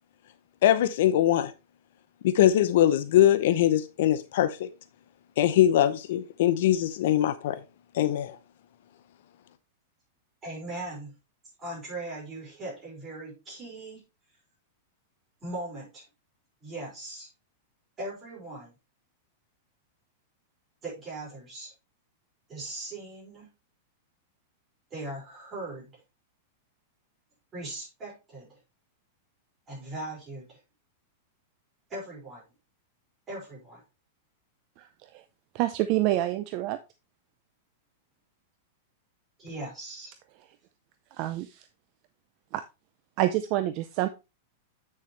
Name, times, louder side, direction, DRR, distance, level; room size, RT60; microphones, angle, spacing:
voice 1, 0.6-1.5 2.2-4.7 5.4-7.6 7.9-8.4, left 12 dB, 60° left, 0.6 m, -22 dB
voice 2, 10.4-11.1 11.6-14.0 15.4-16.0 16.6-17.3 18.0-18.7 20.8-21.7 22.5-23.5 24.9-25.9 27.5-28.6 29.7-30.6 31.9-32.4 33.3-33.8 39.4-40.1, right 2 dB, 15° right, 5.3 m, -39 dB
voice 3, 35.5-36.8 41.2-41.6 42.5-42.6 43.2-44.1, right 14 dB, 35° right, 0.5 m, -27 dB
8.6 x 6.5 x 3.2 m
supercardioid pair, 165°, 0 cm